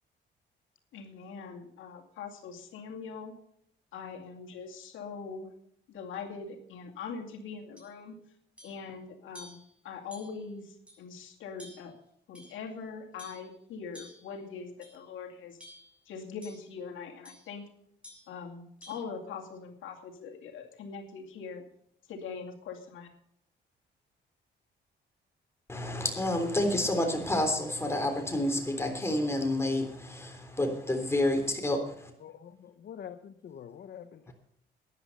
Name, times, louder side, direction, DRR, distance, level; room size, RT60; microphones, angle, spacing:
voice 1, 0.9-3.3 3.9-5.5 5.9-8.2 8.6-12.0 12.3-15.6 16.1-17.6 18.3-21.6 22.1-23.1, left 5 dB, 80° left, 3 dB, 2.4 m, -42 dB
sound 1, 7.8-7.9 8.6-8.8 9.3-9.7 10.1-10.5 10.9-11.0 11.6-12.0 12.3-12.7 13.2-13.5 13.9-14.3 14.8-15.1 15.6-16.0 16.4-16.7 17.2-17.5 18.0-18.3 18.8-19.0, left 1 dB, 5° right, 6.8 m, -51 dB
voice 2, 25.7-32.1 34.3-34.4, left 1 dB, 15° left, 4 dB, 3.5 m, -29 dB
voice 3, 32.2-34.3, left 9 dB, 55° left, 10 dB, 0.9 m, -46 dB
13.5 x 10.5 x 5.5 m, 0.71 s
cardioid pair, 90°, 20 cm